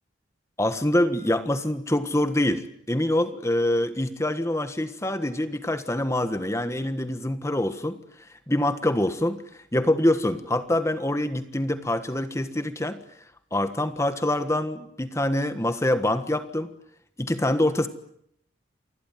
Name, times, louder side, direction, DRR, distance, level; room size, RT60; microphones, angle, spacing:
voice 1, 0.6-8.0 8.5-9.4 9.7-13.0 13.5-16.7 17.2-17.9, left 1 dB, 15° left, 10 dB, 1.4 m, -25 dB
28.0 x 21.0 x 9.3 m, 0.71 s
head